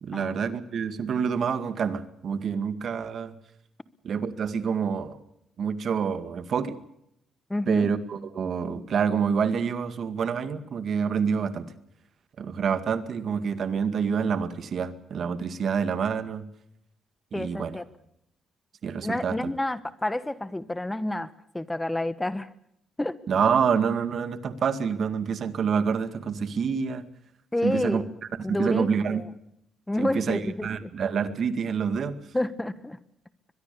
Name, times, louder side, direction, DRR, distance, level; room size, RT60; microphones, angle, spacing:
voice 1, 0.0-3.3 4.0-5.2 5.6-6.8 7.7-11.7 12.4-16.5 17.4-17.8 18.8-19.4 23.3-27.1 27.6-28.0 28.5-29.2 30.0-32.2, right 6 dB, 55° right, 12 dB, 2.1 m, -27 dB
voice 2, 7.5-7.9 17.3-17.9 19.0-22.5 23.0-23.2 27.5-28.1 28.4-29.3 29.9-30.9 32.3-33.0, left 1 dB, 10° left, 15 dB, 1.2 m, -29 dB
23.0 x 21.5 x 7.0 m, 0.77 s
cardioid pair, 90°, 0 cm